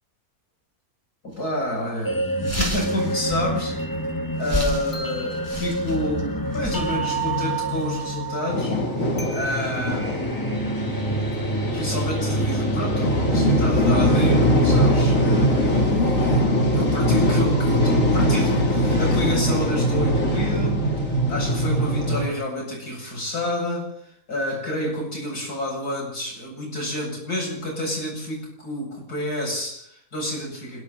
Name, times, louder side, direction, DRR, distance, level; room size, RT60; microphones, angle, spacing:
voice 1, 1.2-3.8 4.4-8.8 9.3-10.3 11.2-16.4 16.7-30.8, left 1 dB, 85° left, -1 dB, 8.6 m, -29 dB
sound 1, 1.3-1.5 1.9-2.0 2.2-9.3, equal, 10° right, 4.4 m, -33 dB
sound 2, 2.0-15.0, right 2 dB, 15° left, 2.1 m, -29 dB
sound 3, 8.5-22.3, equal, 55° left, 3.9 m, -21 dB
29.5 x 21.5 x 4.3 m, 0.64 s
omnidirectional pair, 1.6 m